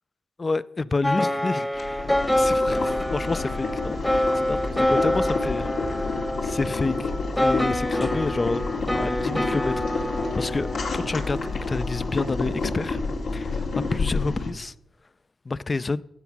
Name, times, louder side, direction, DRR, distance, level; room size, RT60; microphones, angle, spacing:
voice 1, 0.4-7.1 7.4-8.6 9.0-10.7 10.9-13.0 13.3-14.7 15.5-16.0, left 3 dB, 35° left, 0.5 m, -29 dB
sound 1, 1.0-12.1, left 1 dB, 10° left, 1.0 m, -27 dB
Boiling, 1.7-14.5, left 3 dB, 80° left, 2.4 m, -29 dB
15.5 x 7.0 x 6.0 m
cardioid pair, 65°, 0 cm